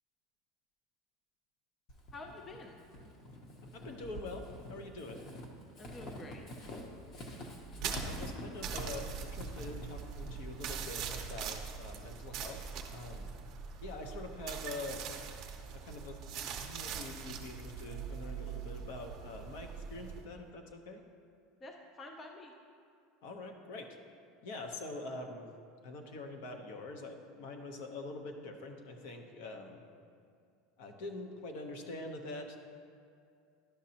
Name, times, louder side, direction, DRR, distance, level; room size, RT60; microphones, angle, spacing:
Walk footsteps / Squeak, 1.9-11.5, equal, 35° left, 0.8 m, -47 dB
voice 1, 2.1-2.8 5.8-6.4 21.6-22.5, left 2 dB, 20° left, 2 dB, 0.4 m, -48 dB
voice 2, 3.7-4.4 4.7-5.2 7.7-12.6 12.9-13.3 13.8-15.0 15.7-16.2 16.6-21.0 23.2-23.9 24.4-25.5 25.8-29.8 30.8-32.6, left 2 dB, 65° left, 4 dB, 0.8 m, -44 dB
sound 1, 7.8-20.2, right 6 dB, 40° right, 0.6 m, -42 dB
11.5 x 5.1 x 2.8 m, 2.3 s
supercardioid pair, 165°, 0 cm